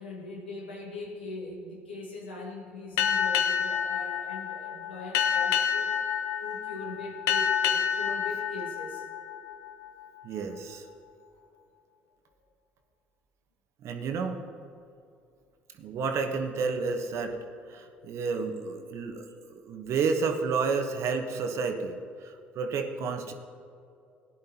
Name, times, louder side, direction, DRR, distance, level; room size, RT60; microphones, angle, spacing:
voice 1, 0.0-6.0 6.4-9.0 11.3-11.4, left 2 dB, 90° left, -1 dB, 1.6 m, -41 dB
Boat Water vehicle, 3.0-10.0, left 8 dB, 70° left, 0.8 m, -29 dB
voice 2, 10.2-10.8 13.8-14.4 15.8-17.4 17.7-23.3, right 5 dB, 60° right, 5 dB, 1.2 m, -31 dB
17.5 x 10.5 x 2.9 m, 2.5 s
hypercardioid pair, 55°, 6 cm